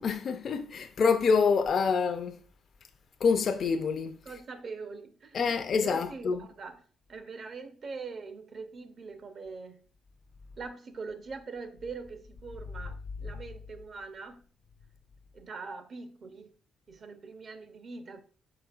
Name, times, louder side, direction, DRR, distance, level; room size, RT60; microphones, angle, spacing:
voice 1, 0.0-2.4 3.2-4.2 5.3-6.5, left 5 dB, 55° left, 0.4 m, -26 dB
voice 2, 4.3-5.4 5.8-6.8 7.1-9.9 10.6-14.4 15.3-16.5 16.9-18.2, right 4 dB, 50° right, 0.6 m, -42 dB
4.9 x 4.1 x 2.4 m
cardioid pair, 90°, 0 cm